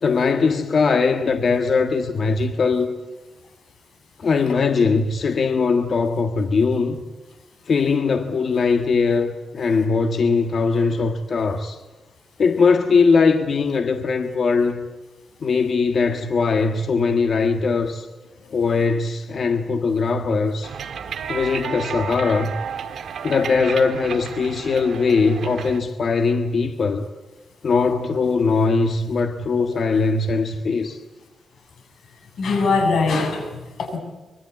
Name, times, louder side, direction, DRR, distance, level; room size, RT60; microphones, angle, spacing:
voice 1, 0.0-2.9 4.2-7.0 7.7-11.8 12.4-14.9 15.4-18.1 18.5-20.7 21.3-22.5 23.2-27.1 27.6-31.0, left 4 dB, 50° left, 1.6 m, -20 dB
sound 1, 20.6-25.8, right 7 dB, 70° right, 1.8 m, -32 dB
voice 2, 32.4-34.0, left 4 dB, 70° left, 7.7 m, -21 dB
25.0 x 22.5 x 8.5 m
wide cardioid pair, 135°, 0 cm